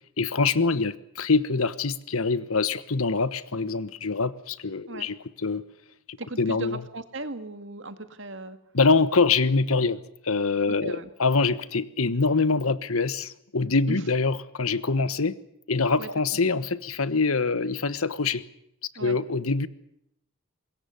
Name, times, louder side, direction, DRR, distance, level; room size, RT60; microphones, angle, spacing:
voice 1, 0.2-5.6 6.1-6.8 8.7-15.4 15.7-18.4 19.0-19.7, left 4 dB, 80° left, 15 dB, 1.3 m, -24 dB
voice 2, 6.2-8.6 10.7-11.1 13.9-14.0 16.0-16.1 19.0-19.2, right 2 dB, 60° right, 10 dB, 2.0 m, -37 dB
25.0 x 21.5 x 7.0 m, 0.77 s
head